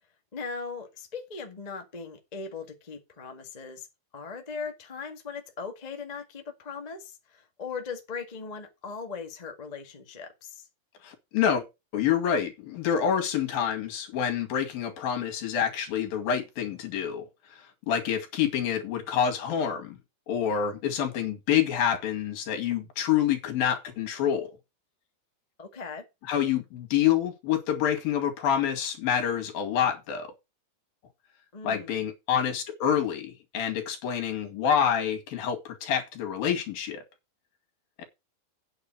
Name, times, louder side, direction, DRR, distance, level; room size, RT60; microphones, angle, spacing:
voice 1, 0.3-3.9 4.1-10.7 25.6-26.0 31.5-32.1, left 5 dB, 25° left, 0.8 m, -39 dB
voice 2, 11.0-11.6 11.9-20.0 20.3-24.5 26.3-30.3 31.6-37.0 38.0-38.1, left 9 dB, 70° left, 3.9 m, -27 dB
9.3 x 6.7 x 6.1 m
omnidirectional pair, 4.4 m